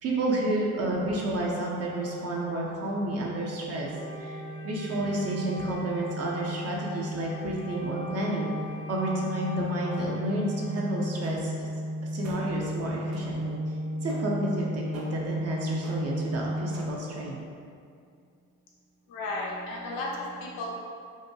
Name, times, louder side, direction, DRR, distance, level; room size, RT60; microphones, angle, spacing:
voice 1, 0.0-3.9 4.2-8.5 8.9-11.7 12.1-13.6 14.0-17.4, right 1 dB, 40° right, -3 dB, 0.6 m, -30 dB
sound 1, 0.9-16.9, equal, 60° right, 0.9 m, -36 dB
Wind instrument woodwind instrument, 3.9-11.6, left 1 dB, 75° left, 1.0 m, -44 dB
sound 2, 9.9-10.4 11.2-11.7 12.2-12.7 13.1-13.6 14.1-14.5 14.9-15.4 15.8-16.3 16.7-17.2, right 1 dB, 85° right, 0.5 m, -47 dB
voice 2, 11.3-12.0 19.1-20.7, left 2 dB, 55° left, -3 dB, 0.7 m, -36 dB
2.9 x 2.2 x 2.2 m, 2.3 s
hypercardioid pair, 60°, 41 cm